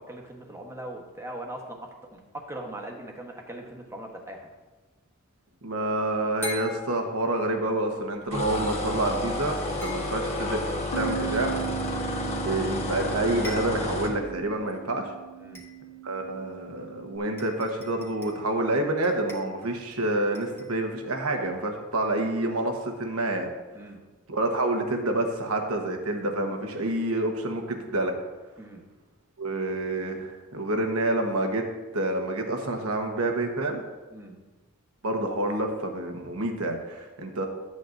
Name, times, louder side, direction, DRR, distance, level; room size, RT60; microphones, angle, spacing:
voice 1, 0.0-4.5 8.2-8.3 15.3-15.6 23.7-24.0 28.6-28.8 34.1-34.4, right 1 dB, 15° right, 1 dB, 1.1 m, -40 dB
sound 1, 3.0-3.3 6.4-7.7 9.8-10.6 12.7-12.8 13.1-13.2 13.4-14.1 14.6-14.7 15.5-16.1 16.9-17.0 17.4-18.5 19.0-20.0 20.3-20.8, left 2 dB, 10° left, 1.6 m, -42 dB
voice 2, 5.6-11.5 12.3-15.1 16.0-23.5 24.3-28.1 29.4-31.6 31.9-33.8 35.0-37.5, right 2 dB, 85° right, 3 dB, 1.2 m, -28 dB
sound 2, 8.3-14.2, left 1 dB, 30° left, 1.3 m, -31 dB
Bass guitar, 10.9-17.2, right 9 dB, 80° left, 0.8 m, -38 dB
12.0 x 8.4 x 2.6 m, 1.2 s
head